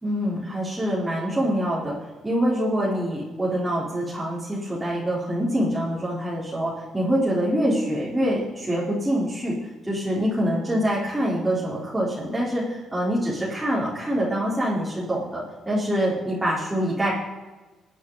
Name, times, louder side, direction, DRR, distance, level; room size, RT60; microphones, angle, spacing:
voice 1, 0.0-2.0 2.2-9.6 9.9-17.1, equal, 10° right, -7 dB, 4.1 m, -25 dB
22.0 x 9.3 x 4.1 m, 1.2 s
cardioid pair, 90°, 0 cm